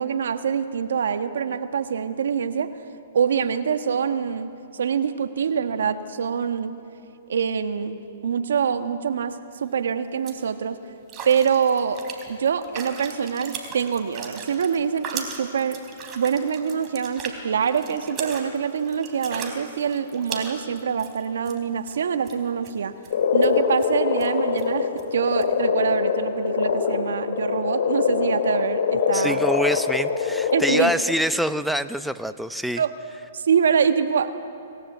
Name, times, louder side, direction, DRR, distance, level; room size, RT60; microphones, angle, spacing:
voice 1, 0.0-2.7 3.1-6.7 7.3-10.8 11.2-12.0 12.3-15.8 16.1-22.9 23.3-29.4 30.5-30.9 32.8-32.9 33.3-34.3, right 7 dB, 75° right, 8 dB, 1.5 m, -25 dB
sound 1, 9.6-9.7 10.0-10.4 11.1-21.6 21.9-22.0 22.2-22.7 23.0-23.1 23.4-23.5 23.8-23.9 24.2-24.3 24.6-24.7 25.0-25.1 25.4-25.5, right 6 dB, 30° right, 3.8 m, -37 dB
Frog, 23.1-30.8, left 6 dB, 60° left, 6.2 m, -23 dB
voice 2, 29.1-32.8, equal, ahead, 10 dB, 0.7 m, -25 dB
26.5 x 18.0 x 8.2 m, 2.8 s
hypercardioid pair, 130°, 0 cm